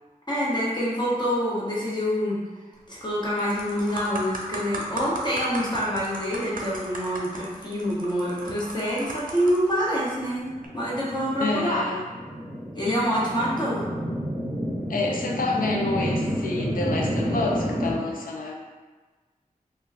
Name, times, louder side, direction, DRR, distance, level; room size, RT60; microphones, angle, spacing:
voice 1, 0.3-2.4 2.9-10.5 10.7-11.8 12.7-13.8, equal, 30° left, -7 dB, 1.0 m, -26 dB
sound 1, 2.8-3.0 3.4-9.8 10.5-10.7, right 2 dB, 75° right, 0.5 m, -36 dB
sound 2, 10.2-17.9, equal, 10° right, 0.9 m, -30 dB
voice 2, 11.4-12.1 14.9-18.6, left 2 dB, 80° left, 0 dB, 0.5 m, -28 dB
2.2 x 2.2 x 3.4 m, 1.3 s
cardioid pair, 50°, 14 cm